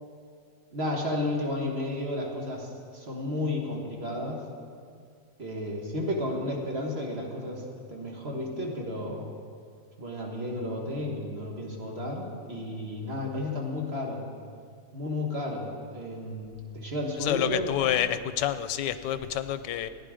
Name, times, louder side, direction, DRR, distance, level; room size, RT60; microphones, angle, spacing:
voice 1, 0.7-4.5 5.4-9.3 10.0-14.2 14.9-17.6, left 1 dB, 35° right, -1 dB, 1.7 m, -32 dB
voice 2, 17.2-19.9, left 11 dB, 85° left, 12 dB, 1.3 m, -28 dB
15.0 x 10.0 x 5.0 m, 2.2 s
omnidirectional pair, 1.9 m